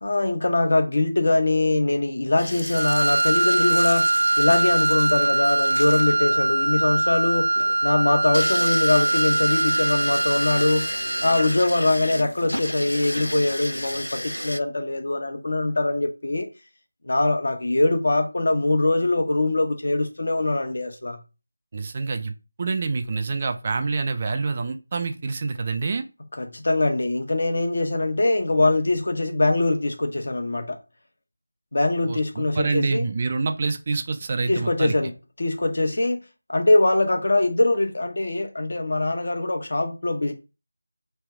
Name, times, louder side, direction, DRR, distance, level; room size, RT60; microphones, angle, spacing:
voice 1, 0.0-10.9 11.2-16.5 17.0-21.2 26.4-30.8 31.7-33.1 34.5-35.1 35.4-36.2 36.5-40.3, left 2 dB, 55° left, 0.9 m, -22 dB
sound 1, 2.4-14.6, equal, 90° left, 0.4 m, -33 dB
Wind instrument woodwind instrument, 2.7-11.6, right 2 dB, 60° right, 0.8 m, -22 dB
voice 2, 21.7-22.3 22.6-26.0 32.1-34.9, right 4 dB, 30° right, 0.4 m, -26 dB
3.3 x 2.9 x 4.7 m
figure-of-eight pair, 165°, 0 cm